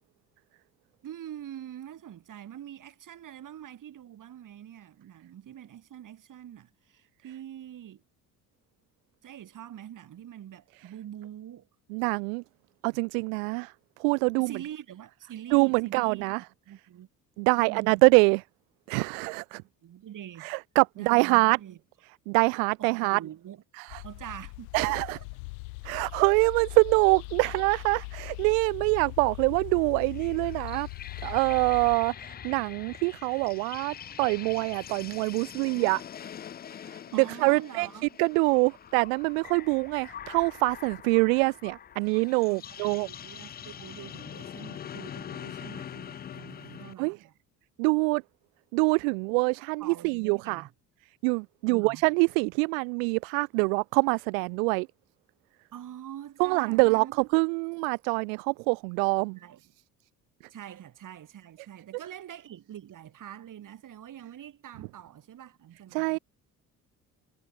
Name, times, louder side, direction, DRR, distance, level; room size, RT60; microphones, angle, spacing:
voice 1, 1.0-8.0 9.2-11.7 14.4-17.1 17.5-18.0 19.5-20.5 20.9-21.8 22.8-23.6 24.0-25.1 37.1-38.1 42.5-47.3 49.8-50.7 51.7-52.0 55.7-57.2 59.3-59.6 60.5-66.2, right 11 dB, 40° right, 1.6 m, -44 dB
voice 2, 11.9-12.4 12.8-13.7 14.0-14.5 15.5-16.4 17.4-18.4 18.9-19.6 20.4-21.6 22.3-23.2 23.8-24.0 24.7-25.2 25.8-30.9 31.2-36.0 37.1-37.9 38.2-43.1 47.0-47.2 47.8-48.2 48.7-50.6 51.2-54.9 56.4-59.4 65.9-66.2, right 37 dB, 65° right, 0.5 m, -25 dB
sound 1, 23.9-32.0, left 30 dB, 70° left, 1.5 m, -40 dB
sound 2, 30.0-46.9, left 9 dB, 20° left, 0.4 m, -44 dB
figure-of-eight pair, 50°, 46 cm